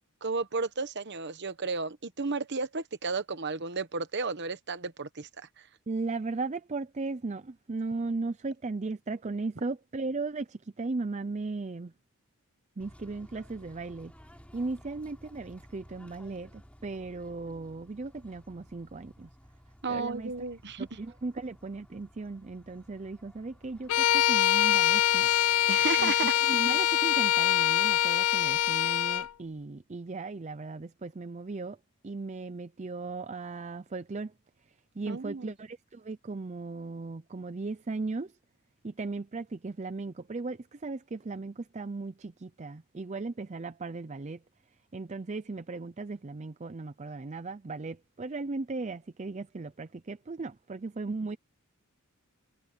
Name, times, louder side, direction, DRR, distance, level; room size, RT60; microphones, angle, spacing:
voice 1, 0.2-5.5 19.8-21.0 25.7-26.3 35.1-35.5, right 4 dB, 50° right, 1.1 m, -33 dB
voice 2, 5.9-11.9 12.8-14.1 14.5-19.3 19.9-20.3 20.8-25.3 26.0-26.1 26.4-31.8 32.0-34.3 35.0-38.3 38.8-44.4 44.9-51.4, right 3 dB, 30° right, 0.5 m, -37 dB
Bird / Train, 12.8-26.2, equal, 5° left, 6.8 m, -56 dB
Bowed string instrument, 23.9-29.3, left 11 dB, 85° left, 0.5 m, -24 dB
head